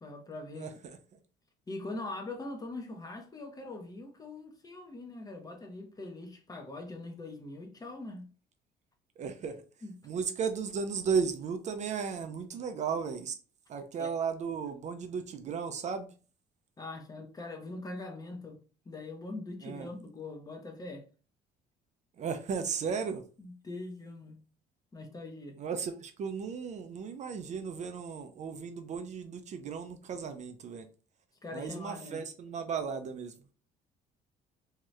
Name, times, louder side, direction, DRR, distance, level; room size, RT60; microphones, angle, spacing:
voice 1, 0.0-0.7 1.7-8.3 9.8-9.9 14.0-14.1 16.8-18.6 18.9-21.0 23.4-24.4 24.9-25.6 31.4-32.2, left 2 dB, 20° left, 0.7 m, -42 dB
voice 2, 0.6-1.0 9.2-9.6 10.0-13.3 13.7-16.1 19.6-19.9 22.2-23.2 25.6-30.9 31.5-33.3, right 6 dB, 45° right, 0.4 m, -35 dB
2.7 x 2.3 x 3.1 m
cardioid pair, 110°, 17 cm